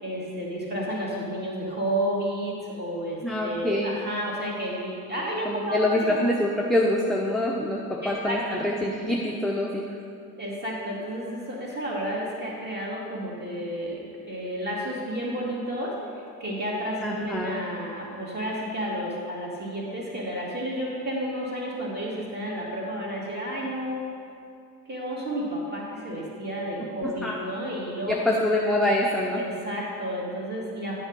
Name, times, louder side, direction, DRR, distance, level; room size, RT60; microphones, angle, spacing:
voice 1, 0.0-5.8 6.1-6.2 8.0-8.6 10.4-24.0 24.9-28.3 29.4-31.0, equal, 20° right, -4 dB, 2.2 m, -31 dB
voice 2, 3.2-4.0 5.4-10.0 17.0-17.5 27.2-27.4 28.1-29.4, left 1 dB, ahead, -2 dB, 0.6 m, -25 dB
9.6 x 4.7 x 5.2 m, 2.4 s
figure-of-eight pair, 55°, 46 cm